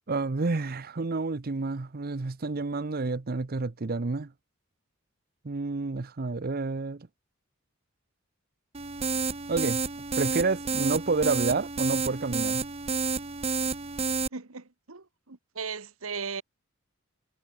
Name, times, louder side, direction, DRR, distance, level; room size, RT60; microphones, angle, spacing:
voice 1, 0.1-4.3 5.4-7.1 9.5-9.8 10.2-12.6, right 3 dB, 45° right, 0.7 m, -29 dB
sound 1, 8.7-14.3, right 4 dB, 30° right, 1.3 m, -30 dB
voice 2, 14.3-16.4, right 5 dB, 80° right, 1.5 m, -37 dB
head